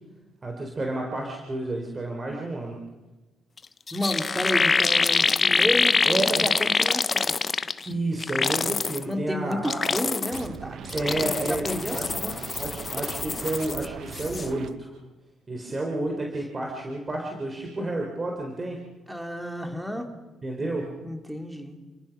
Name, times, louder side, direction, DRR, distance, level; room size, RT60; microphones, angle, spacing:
voice 1, 0.4-2.8 6.0-6.5 7.9-9.8 10.9-12.3 12.6-14.9 15.5-18.8 20.4-20.9, right 2 dB, 30° right, 1 dB, 4.0 m, -30 dB
sound 1, 3.6-3.7 3.9-7.9 8.2-9.0 9.5-10.5 10.9-13.9 14.1-14.5, left 4 dB, 35° left, 0.9 m, -25 dB
voice 2, 3.9-7.3 9.0-12.3 19.1-20.1 20.6-20.7 21.0-21.8, equal, 5° right, 4 dB, 3.4 m, -31 dB
sound 2, 10.3-14.7, right 8 dB, 70° right, 1.1 m, -40 dB
30.0 x 18.0 x 6.1 m, 1.1 s
cardioid pair, 90°, 0 cm